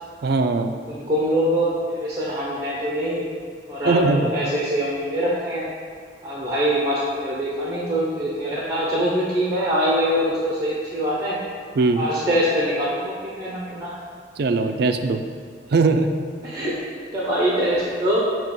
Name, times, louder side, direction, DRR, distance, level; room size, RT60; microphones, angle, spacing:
voice 1, 0.2-0.7 3.9-4.3 11.8-12.0 14.4-15.2 15.7-16.1, right 3 dB, 65° right, 7 dB, 0.4 m, -20 dB
voice 2, 0.9-3.2 3.7-5.6 6.2-11.4 12.0-14.0 16.4-16.8 17.1-18.2, equal, 20° right, -5 dB, 0.9 m, -23 dB
7.0 x 2.9 x 5.4 m, 2.1 s
head